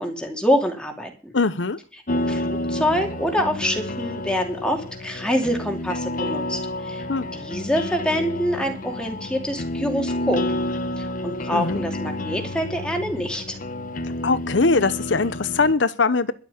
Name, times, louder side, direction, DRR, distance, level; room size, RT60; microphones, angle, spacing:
voice 1, 0.0-1.3 2.1-7.0 7.3-10.4 11.0-13.6, equal, 5° left, 2.8 m, -25 dB
voice 2, 1.3-1.8 7.1-7.3 11.5-11.8 14.2-16.3, left 3 dB, 80° left, 0.9 m, -21 dB
sound 1, 2.1-15.7, left 1 dB, 45° left, 1.1 m, -30 dB
12.0 x 7.5 x 8.3 m
head